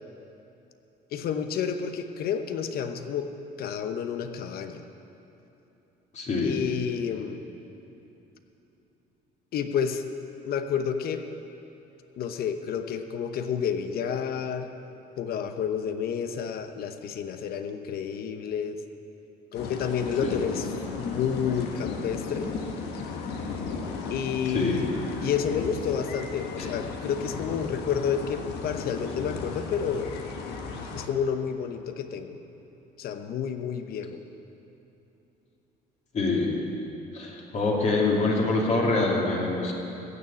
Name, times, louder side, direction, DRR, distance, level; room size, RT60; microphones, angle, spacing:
voice 1, 1.1-3.3 3.6-4.8 6.4-7.4 9.5-10.0 10.4-11.2 12.2-14.7 15.2-18.8 19.5-20.7 21.0-22.5 24.1-24.9 25.2-30.1 30.9-32.4 33.0-34.2, left 7 dB, 65° left, 8 dB, 1.0 m, -30 dB
voice 2, 6.1-6.6 20.2-20.3 24.5-24.8 26.6-26.7 36.1-36.5 37.1-39.7, left 3 dB, 45° left, -2 dB, 2.8 m, -25 dB
sound 1, 19.5-31.1, left 4 dB, 85° left, 1.4 m, -35 dB
15.0 x 7.0 x 8.6 m, 2.9 s
cardioid pair, 110°, 17 cm